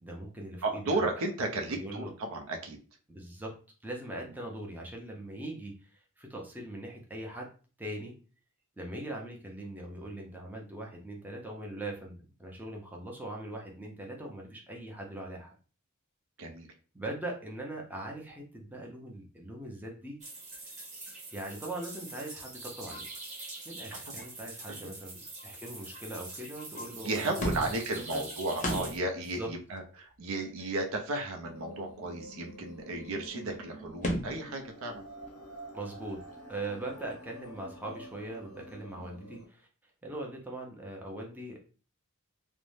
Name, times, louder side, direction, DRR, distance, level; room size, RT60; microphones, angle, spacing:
voice 1, 0.0-1.0 1.7-2.1 3.1-3.6 3.8-7.5 7.8-8.2 8.8-15.6 16.9-20.2 21.3-23.0 23.6-28.2 29.2-29.5 35.7-36.2 36.5-39.7 40.0-41.6, right 1 dB, 10° right, -1 dB, 0.5 m, -41 dB
voice 2, 0.6-2.8 16.4-16.7 24.1-24.2 27.0-35.0, right 2 dB, 65° right, 3 dB, 0.5 m, -34 dB
sound 1, 20.2-29.0, right 2 dB, 35° right, 0.9 m, -44 dB
sound 2, 27.4-27.9 28.6-29.1 29.5-29.6 29.8-29.9 30.2-31.2 33.1-33.2 33.4-33.5 34.0-34.5, equal, 35° left, 0.6 m, -34 dB
sound 3, 31.4-39.4, right 1 dB, 90° left, 0.6 m, -48 dB
2.5 x 2.0 x 3.1 m, 0.37 s
head